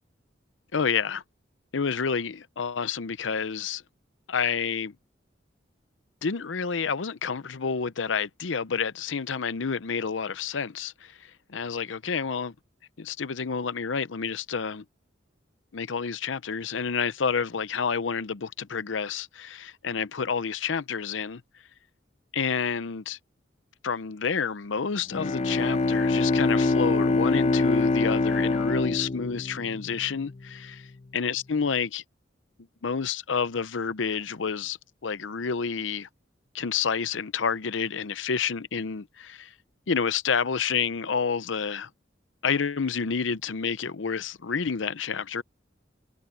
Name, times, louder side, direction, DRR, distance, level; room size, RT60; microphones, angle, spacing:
voice 1, 0.7-1.2 1.7-3.8 4.3-4.9 6.2-12.5 13.0-14.8 15.7-21.4 22.3-23.2 23.8-30.8 31.1-32.0 32.8-34.8 35.0-36.1 36.5-39.5 39.9-41.9 42.4-45.4, left 6 dB, 90° left, 0.7 m, -29 dB
Bowed string instrument, 25.1-30.3, left 3 dB, 35° left, 0.5 m, -24 dB
head